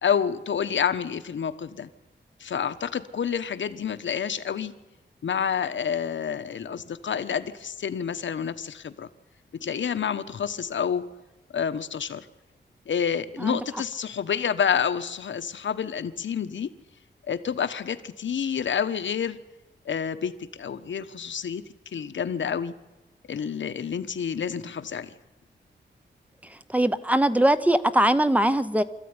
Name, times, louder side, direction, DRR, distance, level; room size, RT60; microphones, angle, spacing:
voice 1, 0.0-1.9 2.4-4.7 5.2-9.1 9.6-11.0 11.5-12.3 12.9-16.7 17.3-19.4 19.8-21.6 21.9-22.7 23.3-25.1, left 7 dB, 75° left, 1.3 m, -28 dB
voice 2, 26.7-28.8, right 1 dB, 5° right, 0.8 m, -21 dB
25.0 x 14.5 x 9.8 m
wide cardioid pair, 165°, 19 cm